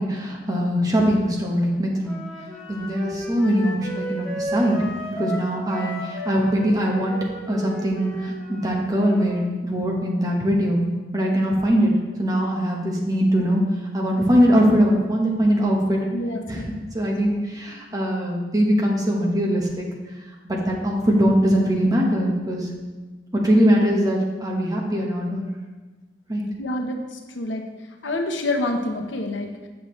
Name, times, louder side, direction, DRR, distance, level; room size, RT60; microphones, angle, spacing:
voice 1, 0.0-2.2 2.7-4.8 5.1-7.2 7.5-10.9 11.1-11.9 12.2-13.6 13.9-16.0 16.5-16.6 16.9-19.9 20.4-22.7 23.3-25.5 26.3-26.4, equal, 20° right, -1 dB, 1.0 m, -21 dB
Wind instrument woodwind instrument, 2.0-9.4, equal, 5° left, 1.9 m, -34 dB
voice 2, 16.1-16.8 26.6-27.6 28.0-29.7, left 1 dB, 85° left, 3 dB, 0.8 m, -27 dB
7.2 x 6.4 x 3.1 m, 1.3 s
head